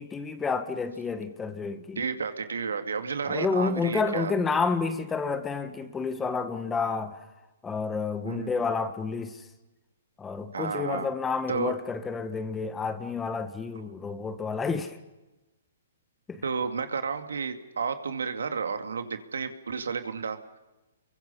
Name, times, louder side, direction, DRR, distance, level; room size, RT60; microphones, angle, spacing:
voice 1, 0.0-2.0 3.3-7.2 7.6-9.4 10.2-15.0 16.3-16.4, left 4 dB, 10° left, 1.5 m, -30 dB
voice 2, 2.0-4.3 8.2-8.6 10.5-11.1 11.5-11.7 16.4-20.4, right 5 dB, 85° right, 2.2 m, -31 dB
29.0 x 23.5 x 5.6 m
hypercardioid pair, 140°, 0 cm